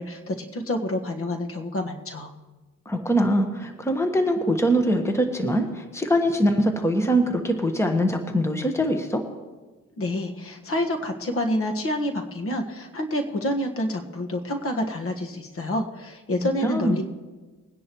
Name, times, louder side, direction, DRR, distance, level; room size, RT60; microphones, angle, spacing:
voice 1, 0.0-2.3 10.0-17.0, left 1 dB, 45° left, 4 dB, 1.6 m, -28 dB
voice 2, 2.9-9.2 16.6-17.0, equal, 10° left, 5 dB, 1.3 m, -23 dB
21.5 x 10.0 x 3.1 m, 1.3 s
cardioid pair, 90°, 30 cm